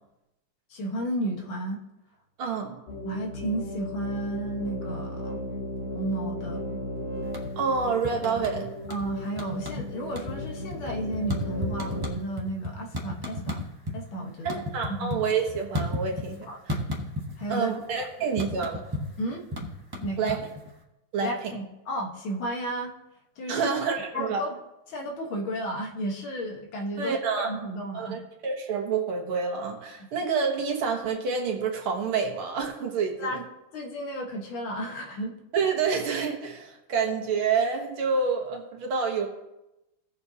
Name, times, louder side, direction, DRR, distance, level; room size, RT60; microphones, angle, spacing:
voice 1, 0.7-1.8 3.0-5.4 5.9-6.6 8.9-13.6 13.9-14.6 14.9-15.1 16.5-16.8 17.4-17.7 18.3-18.4 19.2-19.4 20.0-20.4 21.2-22.9 23.4-23.7 24.1-24.5 24.9-27.2 27.4-28.2 33.2-33.4 33.7-35.3, right 1 dB, 70° left, 1 dB, 2.1 m, -33 dB
voice 2, 2.4-2.8 7.6-8.7 14.4-16.8 17.5-18.8 20.2-20.4 21.1-21.5 23.5-24.4 27.0-27.5 27.9-33.4 35.5-39.3, right 5 dB, 75° right, 1 dB, 2.2 m, -28 dB
sound 1, 2.9-12.1, left 1 dB, 35° left, 1.3 m, -35 dB
sound 2, 7.2-7.7 8.0-9.1 9.4-9.9 10.1-14.0 14.3-16.4 16.7-17.6 17.8-20.7, left 1 dB, 15° right, 0.9 m, -33 dB
17.5 x 6.9 x 2.8 m, 0.94 s
omnidirectional pair, 2.3 m